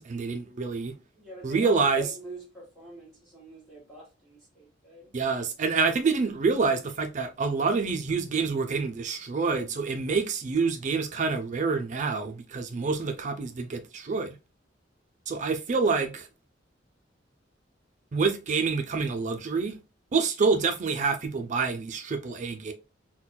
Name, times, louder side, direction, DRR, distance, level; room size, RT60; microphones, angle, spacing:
voice 1, 0.0-0.9 1.4-2.0 5.1-14.4 15.3-16.3 18.1-19.8 20.1-22.7, right 4 dB, 40° right, 0.4 m, -27 dB
voice 2, 1.1-5.1, right 1 dB, ahead, 1.4 m, -45 dB
4.1 x 2.2 x 2.2 m
head